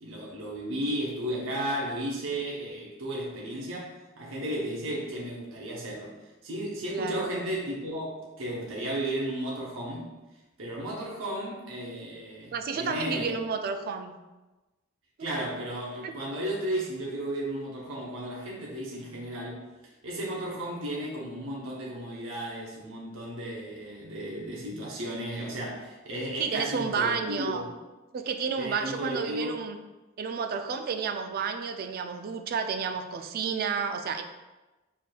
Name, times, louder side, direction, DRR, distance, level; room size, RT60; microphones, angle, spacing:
voice 1, 0.0-6.2 6.4-10.1 10.6-13.3 15.2-19.6 20.0-27.7 28.6-29.6, right 1 dB, 75° right, -4 dB, 0.8 m, -34 dB
voice 2, 6.9-7.4 12.5-14.1 16.0-16.1 26.4-27.6 28.1-29.8 30.2-34.2, right 6 dB, 50° right, 7 dB, 0.3 m, -31 dB
4.4 x 3.4 x 2.2 m, 1.1 s
head